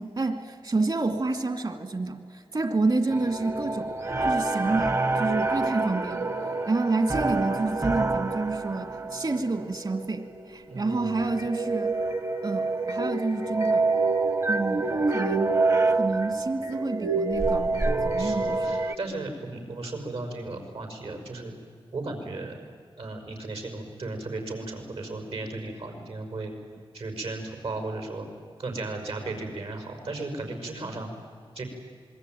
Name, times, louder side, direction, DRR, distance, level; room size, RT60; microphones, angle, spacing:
voice 1, 0.0-3.9 4.2-6.3 6.7-11.9 12.4-13.9 14.5-15.5 15.9-18.8, right 3 dB, 55° right, 9 dB, 2.2 m, -29 dB
sound 1, 3.1-18.9, right 3 dB, 35° right, 0.9 m, -27 dB
voice 2, 10.7-11.2 18.2-21.5 21.9-22.6 23.0-26.5 26.9-28.3 28.6-31.1 31.5-31.6, right 2 dB, 85° right, 5 dB, 5.9 m, -35 dB
27.0 x 22.5 x 9.2 m, 2.1 s
wide cardioid pair, 105°, 10 cm